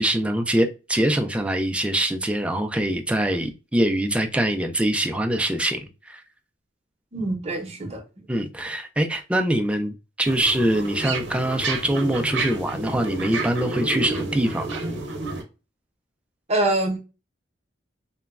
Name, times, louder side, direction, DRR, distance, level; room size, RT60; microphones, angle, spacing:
voice 1, 0.0-6.2 8.3-14.8, right 1 dB, 5° right, 0.3 m, -24 dB
voice 2, 7.1-8.0 16.5-17.0, right 2 dB, 35° right, 0.7 m, -24 dB
sound 1, 10.2-15.4, right 3 dB, 70° right, 0.7 m, -30 dB
3.0 x 2.2 x 2.3 m
head